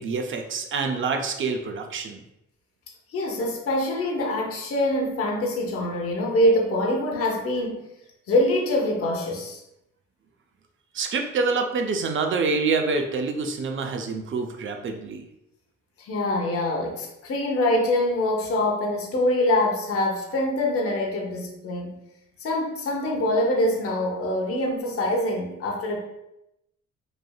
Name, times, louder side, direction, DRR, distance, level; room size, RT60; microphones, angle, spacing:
voice 1, 0.0-2.2 10.9-15.2, right 4 dB, 40° right, 4 dB, 0.5 m, -26 dB
voice 2, 3.1-7.9 8.3-9.6 16.0-22.0 22.4-26.0, left 1 dB, 50° left, 0 dB, 0.7 m, -24 dB
3.2 x 2.5 x 2.3 m, 0.86 s
cardioid pair, 90°, 30 cm